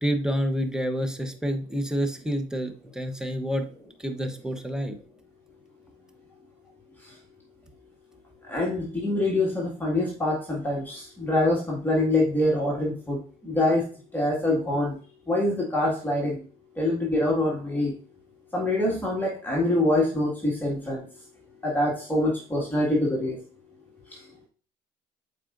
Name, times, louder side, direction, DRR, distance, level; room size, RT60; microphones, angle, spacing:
voice 1, 0.0-3.7 4.0-5.0, equal, 5° right, 6 dB, 1.0 m, -28 dB
voice 2, 8.5-13.9 14.1-14.9 15.3-16.4 16.8-17.9 18.5-21.0 21.6-23.4, left 1 dB, 10° left, -4 dB, 2.0 m, -25 dB
7.4 x 4.9 x 2.6 m, 0.40 s
cardioid pair, 110°, 17 cm